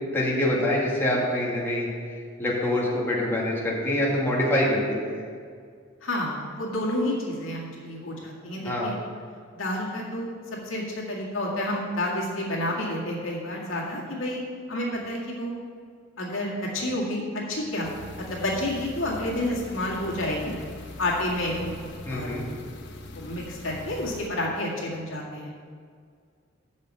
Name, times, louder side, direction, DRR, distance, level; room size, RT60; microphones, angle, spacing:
voice 1, 0.1-1.9 2.4-5.2 8.6-8.9 22.0-22.4, left 1 dB, 10° left, -5 dB, 1.6 m, -25 dB
voice 2, 6.0-8.9 9.5-10.3 10.7-14.4 14.7-15.5 16.2-17.9 18.2-20.5 21.0-21.7 22.0-22.3 23.2-25.5, left 1 dB, 85° left, -3 dB, 2.0 m, -29 dB
sound 1, 17.8-24.3, left 2 dB, 60° left, 0.9 m, -42 dB
6.7 x 6.3 x 7.7 m, 2.1 s
head